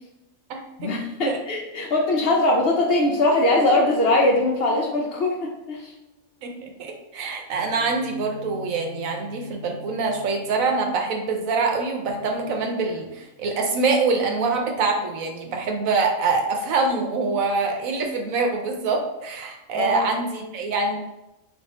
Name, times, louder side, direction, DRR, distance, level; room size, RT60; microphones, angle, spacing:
voice 1, 0.8-5.9 19.7-20.0, left 2 dB, 60° left, 0 dB, 0.6 m, -21 dB
sound 1, 2.4-6.1 7.5-11.3 12.1-13.3, left 2 dB, 80° left, 1.1 m, -40 dB
voice 2, 6.4-21.0, right 4 dB, 85° right, 2 dB, 1.1 m, -25 dB
3.4 x 2.4 x 4.1 m, 0.94 s
omnidirectional pair, 1.4 m